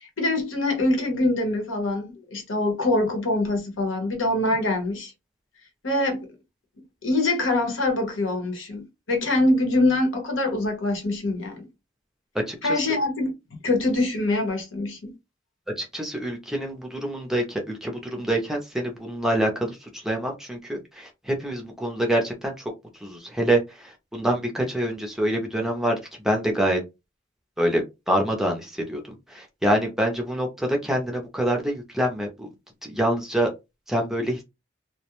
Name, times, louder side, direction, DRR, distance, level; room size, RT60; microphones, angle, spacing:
voice 1, 0.0-5.1 5.8-6.3 7.0-11.7 12.6-13.3 13.6-15.1, left 2 dB, 80° left, 0.9 m, -24 dB
voice 2, 12.5-12.8 15.8-22.7 23.0-26.0 26.2-26.8 27.6-29.0 29.3-32.5 32.8-33.5 33.9-34.4, right 1 dB, ahead, 0.5 m, -26 dB
2.3 x 2.1 x 2.9 m
head